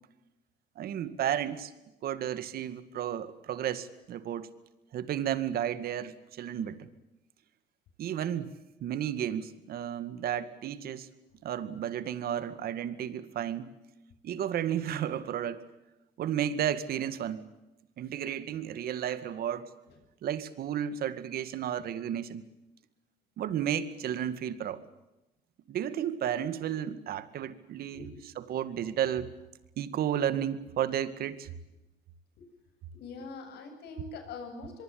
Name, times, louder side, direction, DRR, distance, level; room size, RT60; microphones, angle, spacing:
voice 1, 0.8-1.7 2.0-4.5 4.9-6.9 8.0-11.1 11.4-13.7 14.2-15.6 16.2-17.4 18.0-19.7 20.2-22.4 23.4-24.8 25.7-28.0 28.4-29.3 29.8-31.5, right 10 dB, 65° right, 13 dB, 2.1 m, -33 dB
voice 2, 27.9-28.2 32.4-32.5 32.9-34.8, left 4 dB, 75° left, 5 dB, 7.9 m, -44 dB
24.0 x 23.0 x 8.7 m, 0.96 s
cardioid pair, 110°, 17 cm